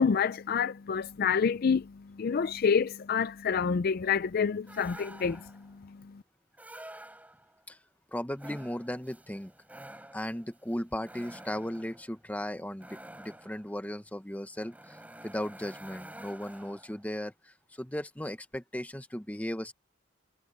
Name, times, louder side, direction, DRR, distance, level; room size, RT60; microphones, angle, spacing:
voice 1, 0.0-1.9 2.2-5.4, left 6 dB, 50° left, 0.4 m, -27 dB
sound 1, 4.7-5.7 6.5-7.6 8.3-17.1, right 1 dB, 10° right, 5.8 m, -49 dB
voice 2, 8.1-9.5 10.1-15.0 15.2-19.7, left 1 dB, 10° left, 1.1 m, -36 dB
head